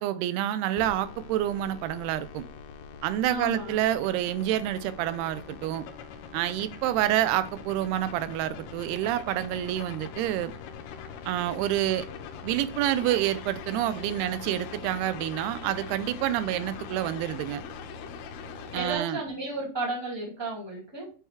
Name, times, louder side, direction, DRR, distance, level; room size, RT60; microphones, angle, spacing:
voice 1, 0.0-2.5 3.0-5.9 6.3-10.5 11.3-12.1 12.4-17.6 18.7-19.2, right 12 dB, 85° right, 2.6 m, -28 dB
sound 1, 0.8-19.0, left 6 dB, 85° left, 2.8 m, -42 dB
voice 2, 3.3-3.8 18.7-21.1, right 2 dB, 10° right, 1.4 m, -33 dB
7.3 x 4.6 x 3.3 m
omnidirectional pair, 4.6 m